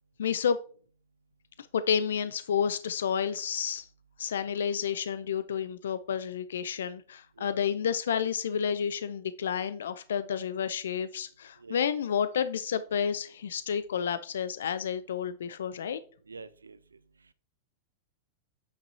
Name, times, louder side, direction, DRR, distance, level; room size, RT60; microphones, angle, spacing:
voice 1, 0.2-0.6 1.6-3.8 4.2-16.0, left 7 dB, 75° left, 0.4 m, -30 dB
voice 2, 16.3-16.8, right 4 dB, 90° right, 0.4 m, -45 dB
9.0 x 5.3 x 2.7 m
hypercardioid pair, 100°, 0 cm